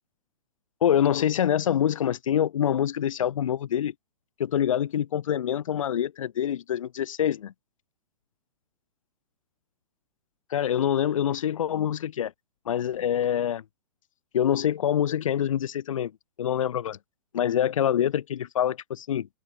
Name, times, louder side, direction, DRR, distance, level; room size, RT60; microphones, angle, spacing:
voice 1, 0.8-3.9 4.4-7.5 10.5-12.3 12.7-13.6 14.3-16.1 16.4-17.0 17.3-19.3, left 10 dB, 55° left, 1.8 m, -25 dB
open air
figure-of-eight pair, 110°, 20 cm